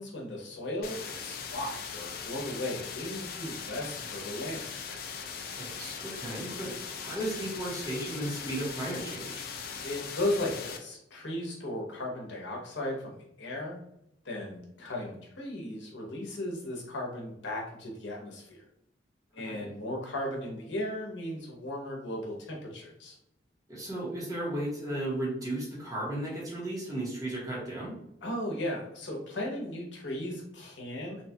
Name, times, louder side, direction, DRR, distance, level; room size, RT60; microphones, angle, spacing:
voice 1, 0.0-4.7 9.8-13.8 14.2-18.6 19.3-23.2 28.2-31.2, left 1 dB, 80° left, -1 dB, 0.8 m, -36 dB
sound 1, 0.8-10.8, left 6 dB, 50° left, 0.3 m, -40 dB
voice 2, 5.5-9.5 19.4-19.7 23.7-27.9, right 1 dB, 20° right, -5 dB, 0.8 m, -35 dB
2.8 x 2.2 x 2.7 m, 0.78 s
head